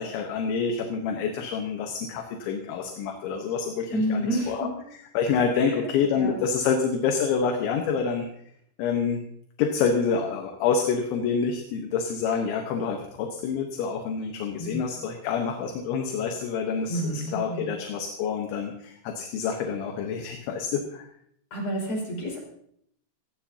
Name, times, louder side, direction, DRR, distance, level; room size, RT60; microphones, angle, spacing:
voice 1, 0.0-4.7 5.1-8.3 8.8-9.2 9.6-21.0, left 6 dB, 75° left, 3 dB, 3.4 m, -27 dB
voice 2, 3.9-4.8 5.5-6.4 14.6-14.8 16.9-17.7 21.5-22.4, right 1 dB, 40° left, -3 dB, 7.2 m, -30 dB
19.0 x 15.5 x 2.9 m, 0.69 s
omnidirectional pair, 5.7 m